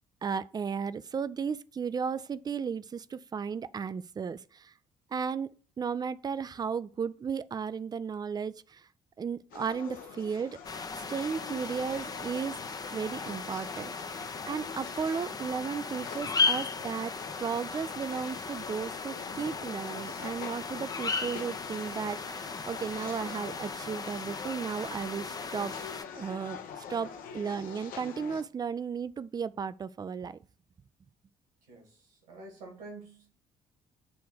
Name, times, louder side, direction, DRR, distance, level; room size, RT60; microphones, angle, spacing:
voice 1, 0.2-4.7 5.1-5.5 5.8-8.9 9.2-10.6 10.9-12.6 12.9-17.1 17.4-25.7 26.1-30.4, right 6 dB, 20° right, 0.4 m, -35 dB
sound 1, 9.5-28.4, left 7 dB, 55° left, 0.8 m, -45 dB
sound 2, 10.6-26.0, left 4 dB, 20° left, 0.6 m, -36 dB
voice 2, 31.7-33.3, right 2 dB, 70° right, 2.4 m, -48 dB
8.3 x 3.4 x 4.7 m
figure-of-eight pair, 45°, 18 cm